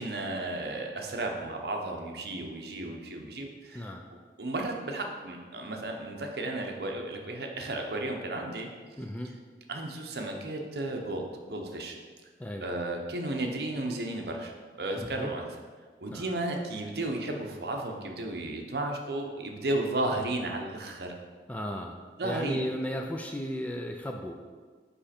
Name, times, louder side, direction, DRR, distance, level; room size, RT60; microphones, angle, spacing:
voice 1, 0.0-3.9 4.4-8.7 9.7-12.0 12.6-15.5 16.0-21.1 22.2-22.6, right 2 dB, 65° right, 2 dB, 0.8 m, -33 dB
voice 2, 3.7-4.1 9.0-9.3 12.4-12.7 14.9-15.3 16.1-16.3 21.5-24.3, equal, 10° left, 2 dB, 0.3 m, -35 dB
5.4 x 4.9 x 4.3 m, 1.5 s
head